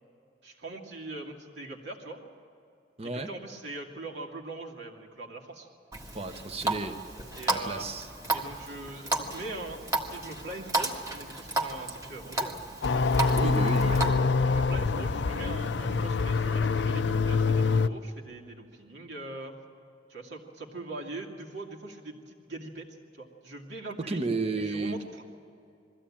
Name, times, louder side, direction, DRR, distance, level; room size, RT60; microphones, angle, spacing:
voice 1, 0.4-2.3 3.0-5.7 7.4-7.9 8.3-12.6 13.7-14.2 14.5-19.5 20.1-24.2 24.5-25.2, right 2 dB, 65° right, 0 dB, 2.5 m, -41 dB
voice 2, 3.0-3.3 6.1-7.0 7.5-8.1 13.3-14.3 24.1-24.9, right 3 dB, 35° right, 8 dB, 1.1 m, -32 dB
Water tap faucet, 5.9-14.1, right 2 dB, 20° right, 1.6 m, -33 dB
sound 1, 12.8-17.9, left 4 dB, 65° left, 0.5 m, -25 dB
22.0 x 15.5 x 8.8 m, 2.6 s
head